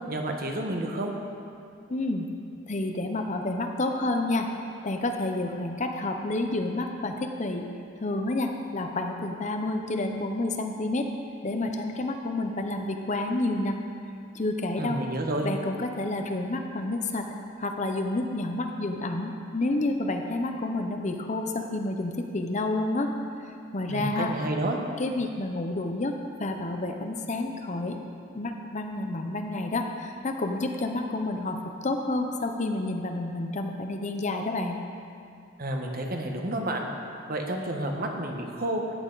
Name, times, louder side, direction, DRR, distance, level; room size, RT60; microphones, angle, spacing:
voice 1, 0.1-1.1 14.8-15.5 23.9-24.8 35.6-36.9 37.3-38.8, right 1 dB, 50° right, 2 dB, 1.2 m, -30 dB
voice 2, 1.9-2.3 2.7-4.5 4.8-7.7 8.0-11.1 11.4-13.8 14.3-15.0 15.4-17.3 17.6-23.1 23.7-24.3 25.0-28.0 28.3-34.8, left 2 dB, 40° left, 4 dB, 0.7 m, -29 dB
14.0 x 8.8 x 4.0 m, 2.4 s
head